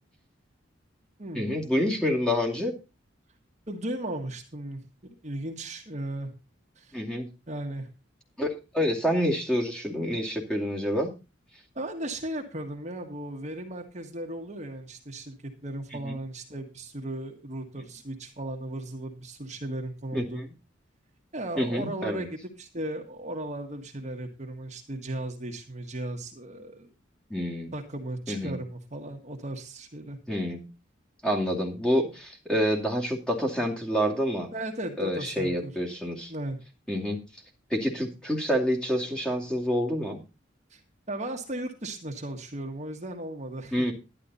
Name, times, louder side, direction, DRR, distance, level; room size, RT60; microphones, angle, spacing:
voice 1, 1.3-2.7 6.9-7.3 8.4-8.5 8.7-11.1 15.9-16.2 20.1-20.5 21.6-22.3 27.3-27.7 28.3-28.6 30.3-30.7 31.2-34.5 35.0-36.3 36.9-37.2 37.7-40.2 43.7-43.9, equal, 5° left, 0 dB, 2.5 m, -27 dB
voice 2, 3.7-6.3 6.8-7.0 7.5-7.9 11.8-20.4 21.3-26.9 27.7-30.2 34.5-35.7 36.3-36.6 40.7-40.8 41.1-43.9, right 1 dB, 35° right, 3 dB, 1.7 m, -36 dB
11.5 x 11.0 x 4.1 m, 0.29 s
head